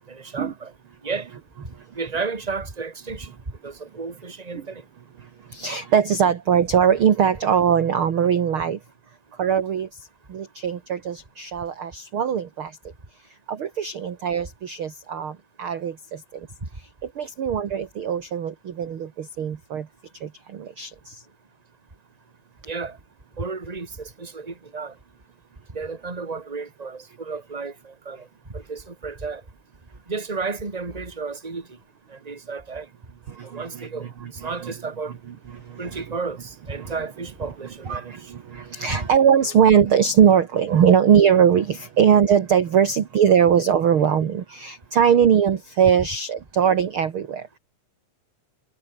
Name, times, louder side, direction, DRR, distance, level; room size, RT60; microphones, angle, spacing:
voice 1, 0.1-0.7 1.0-1.3 1.9-3.3 3.6-4.8 22.7-23.0 23.4-24.9 25.7-29.4 30.1-31.8 32.1-32.9 33.4-34.1 34.4-35.1 35.8-38.3 38.9-39.0, right 4 dB, 10° right, 2.4 m, -32 dB
voice 2, 5.5-8.8 9.4-9.9 10.3-12.7 13.5-16.2 17.2-19.9 20.2-21.2 33.4-33.9 34.4-34.7 36.0-36.1 36.8-36.9 37.9-47.5, right 8 dB, 50° right, 1.8 m, -21 dB
omnidirectional pair, 4.0 m